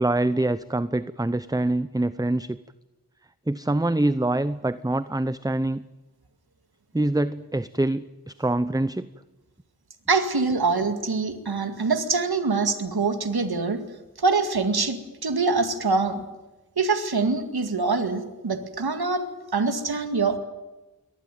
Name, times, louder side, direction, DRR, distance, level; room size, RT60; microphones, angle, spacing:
voice 1, 0.0-2.6 3.5-5.8 6.9-9.1, right 2 dB, 10° right, 14 dB, 0.8 m, -25 dB
voice 2, 10.1-13.8 14.2-16.2 16.8-19.2 19.5-20.4, right 4 dB, 90° right, 8 dB, 2.2 m, -24 dB
24.0 x 18.5 x 9.2 m, 1.1 s
wide cardioid pair, 50°, 37 cm